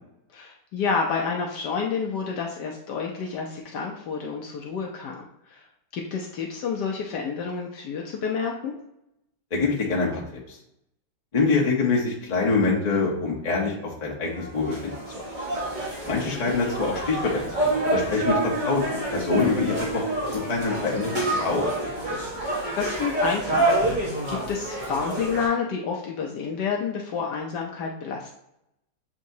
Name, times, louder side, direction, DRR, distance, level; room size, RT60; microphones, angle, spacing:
voice 1, 0.3-5.6 5.9-8.7 16.0-16.2 16.4-16.6 22.4-28.3, left 5 dB, 70° left, 0 dB, 1.1 m, -29 dB
voice 2, 9.5-10.2 10.5-10.6 11.3-14.9 15.2-15.3 16.1-20.0 20.3-21.7, left 4 dB, 30° left, -3 dB, 0.7 m, -25 dB
sound 1, 14.3-25.5, right 2 dB, 30° right, 0.9 m, -28 dB
7.1 x 2.8 x 2.7 m, 0.81 s
omnidirectional pair, 2.1 m